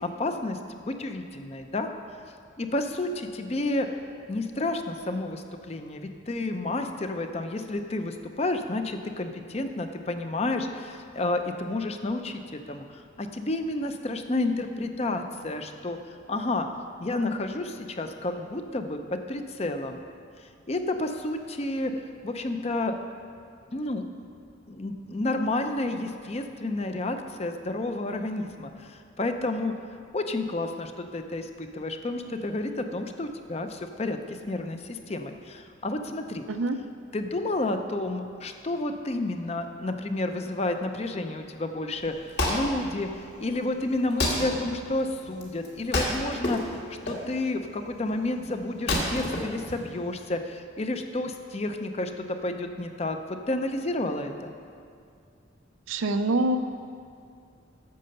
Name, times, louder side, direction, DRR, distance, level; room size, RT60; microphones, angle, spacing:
voice 1, 0.0-0.6 0.9-1.9 2.6-3.9 4.3-12.4 12.7-16.0 16.3-16.7 17.0-20.0 20.7-21.9 22.2-22.9 23.7-24.0 24.7-29.7 30.1-36.4 37.1-46.8 47.1-53.2 53.5-54.5, left 2 dB, 30° left, 6 dB, 0.5 m, -30 dB
voice 2, 36.5-36.8 55.9-56.6, right 2 dB, 85° right, 8 dB, 0.6 m, -25 dB
Wood, 42.0-50.3, left 1 dB, 55° left, 1.7 m, -31 dB
9.3 x 6.6 x 6.6 m, 2.3 s
head